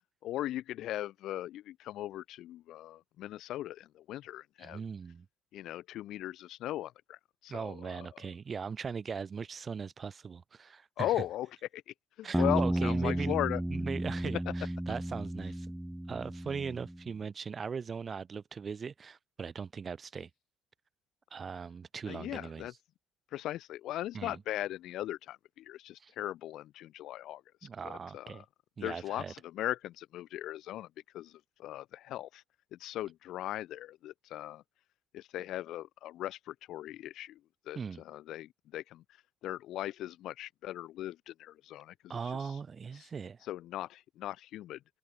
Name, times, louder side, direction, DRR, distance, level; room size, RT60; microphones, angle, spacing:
voice 1, 0.2-4.8 5.5-8.2 11.0-11.5 11.7-13.6 22.1-22.7 23.3-28.4 28.8-30.9 31.1-32.4 32.7-34.6 35.1-37.4 37.6-39.0 39.4-42.6 42.9-43.1 43.4-44.8, left 14 dB, 65° left, 3.3 m, -39 dB
voice 2, 4.6-5.3 7.5-11.1 12.2-13.4 13.7-15.7 16.1-20.3 21.3-22.7 24.1-24.4 26.0-26.1 27.6-28.4 28.8-29.3 37.7-38.0 42.1-43.4, right 6 dB, 40° right, 4.5 m, -39 dB
sound 1, 12.3-17.0, right 1 dB, 5° right, 0.5 m, -33 dB
supercardioid pair, 70°, 0 cm